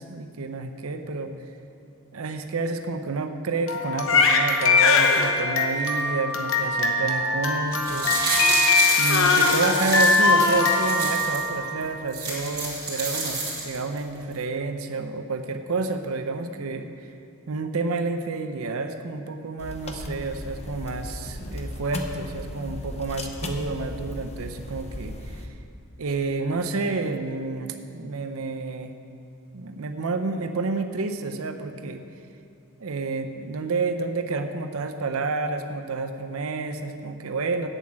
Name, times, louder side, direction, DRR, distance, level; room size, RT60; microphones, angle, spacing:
voice 1, 0.1-1.3 2.1-8.5 9.0-16.9 17.5-25.5 26.0-28.9 29.5-32.0 32.8-37.7, right 3 dB, 75° right, 7 dB, 0.6 m, -29 dB
Crying sobbing, 3.7-11.8, left 3 dB, 60° left, 0.9 m, -21 dB
sound 1, 7.7-11.4 11.8-11.9 12.1-14.0 14.3-14.4, right 2 dB, 20° right, 2.7 m, -28 dB
sound 2, 19.6-25.5, left 1 dB, 30° left, 0.8 m, -36 dB
8.2 x 7.3 x 8.6 m, 2.5 s
head